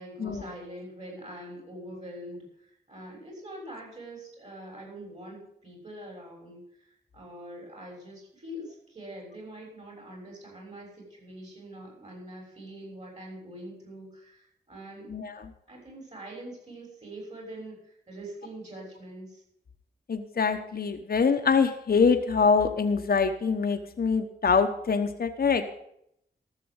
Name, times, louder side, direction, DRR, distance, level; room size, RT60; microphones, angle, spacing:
voice 1, 0.0-15.2 15.7-19.4, right 1 dB, 40° right, -1 dB, 6.5 m, -44 dB
voice 2, 15.1-15.5 20.1-25.7, left 5 dB, 60° left, 5 dB, 1.1 m, -24 dB
14.0 x 6.9 x 8.0 m, 0.72 s
cardioid pair, 65°, 18 cm